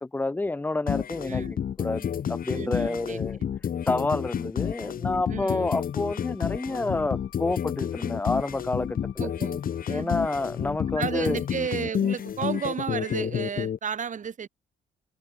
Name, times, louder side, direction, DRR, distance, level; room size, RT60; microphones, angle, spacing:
voice 1, 0.0-3.4 3.9-9.3 9.9-11.4, left 2 dB, 10° left, 0.4 m, -29 dB
sound 1, 0.9-13.8, left 8 dB, 45° left, 0.8 m, -30 dB
voice 2, 2.5-3.2 5.3-5.7 9.2-9.6 9.9-10.2 10.9-14.5, right 7 dB, 40° right, 1.1 m, -33 dB
Wind instrument woodwind instrument, 5.6-11.9, left 14 dB, 85° left, 7.7 m, -58 dB
cardioid pair, 90°, 20 cm